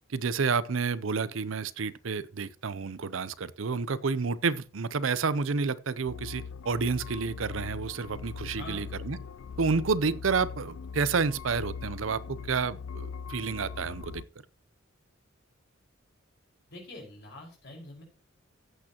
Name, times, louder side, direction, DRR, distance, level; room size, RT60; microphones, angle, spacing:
voice 1, 0.1-9.2 9.6-14.2, right 4 dB, 70° right, 0.6 m, -30 dB
sound 1, 6.1-14.2, left 5 dB, 80° left, 0.4 m, -41 dB
voice 2, 8.5-8.9 16.7-18.0, left 1 dB, 55° left, 5.1 m, -45 dB
14.5 x 8.7 x 2.9 m
head